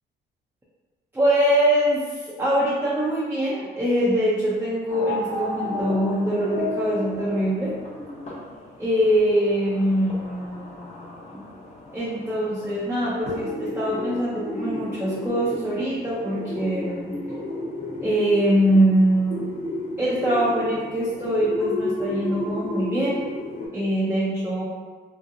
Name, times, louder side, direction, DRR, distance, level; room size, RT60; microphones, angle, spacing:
voice 1, 1.1-7.8 8.8-11.4 11.9-17.1 18.0-19.5 20.0-23.3 23.7-24.6, right 1 dB, 10° right, -8 dB, 0.5 m, -23 dB
sound 1, 4.9-23.7, left 1 dB, 35° left, 0.9 m, -33 dB
2.8 x 2.1 x 2.5 m, 1.4 s
cardioid pair, 90°, 20 cm